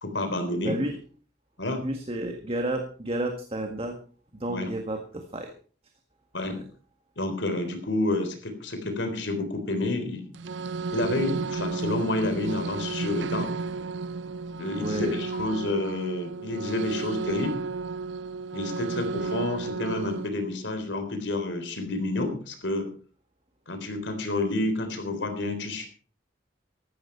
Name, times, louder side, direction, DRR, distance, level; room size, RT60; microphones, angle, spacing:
voice 1, 0.0-0.8 1.6-1.8 4.5-4.7 6.3-6.6 7.2-10.3 10.9-13.5 14.6-17.6 18.5-22.9 23.7-25.9, left 2 dB, 70° left, 7 dB, 3.7 m, -29 dB
voice 2, 0.6-1.0 1.8-4.0 4.4-5.5 6.4-6.6 14.7-15.2, right 1 dB, 30° right, 4 dB, 1.7 m, -31 dB
sound 1, 10.3-20.3, right 4 dB, 70° right, 0.6 m, -33 dB
15.5 x 12.5 x 4.6 m, 0.41 s
head